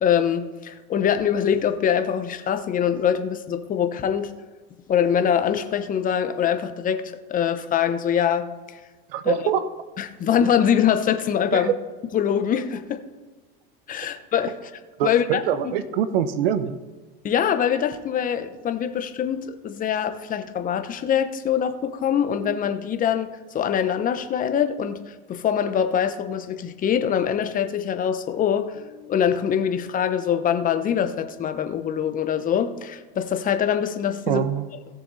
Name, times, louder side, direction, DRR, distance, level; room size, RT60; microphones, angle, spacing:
voice 1, 0.0-4.3 4.9-7.0 7.3-8.8 9.2-9.4 10.0-11.7 12.1-13.0 13.9-14.6 15.0-15.7 17.2-23.3 23.5-34.4, left 8 dB, 30° left, 9 dB, 1.0 m, -23 dB
voice 2, 9.1-9.7 11.5-11.7 15.0-16.8 34.3-34.7, right 9 dB, 80° right, 13 dB, 1.0 m, -24 dB
17.0 x 6.9 x 4.1 m, 1.3 s
supercardioid pair, 125°, 29 cm